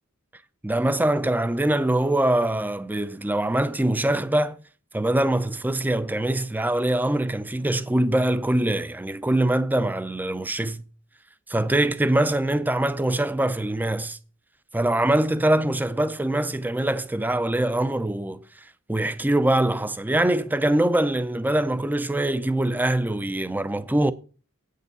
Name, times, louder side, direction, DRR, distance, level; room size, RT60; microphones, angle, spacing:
voice 1, 0.6-4.6 4.9-10.8 11.5-14.2 14.7-18.4 18.9-24.1, right 1 dB, 10° right, 0.5 m, -23 dB
8.8 x 6.6 x 6.8 m
head